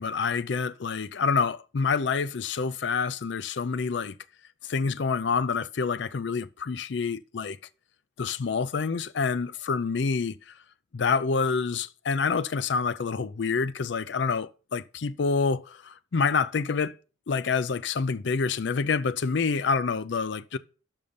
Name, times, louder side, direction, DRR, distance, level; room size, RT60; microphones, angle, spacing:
voice 1, 0.0-4.1 4.7-7.6 8.2-10.4 10.9-16.9 17.3-20.6, left 5 dB, 65° left, 0.5 m, -27 dB
6.5 x 5.4 x 7.0 m
head